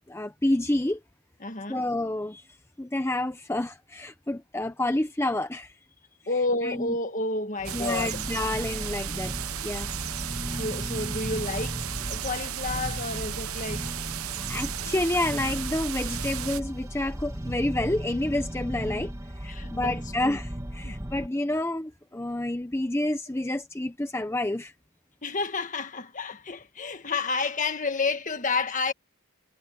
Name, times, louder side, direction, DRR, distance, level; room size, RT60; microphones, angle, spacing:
voice 1, 0.1-1.0 1.7-2.4 2.8-5.7 6.6-6.9 7.7-9.3 9.6-9.9 14.5-19.1 19.4-24.7, left 1 dB, 10° left, 0.7 m, -29 dB
voice 2, 1.4-1.9 6.3-8.2 10.6-11.8 12.1-13.9 19.5-20.4 20.8-20.9 25.2-28.9, left 3 dB, 35° left, 1.5 m, -30 dB
sound 1, 7.6-21.3, equal, 15° right, 1.6 m, -36 dB
sound 2, 7.6-16.6, right 12 dB, 75° right, 0.9 m, -35 dB
head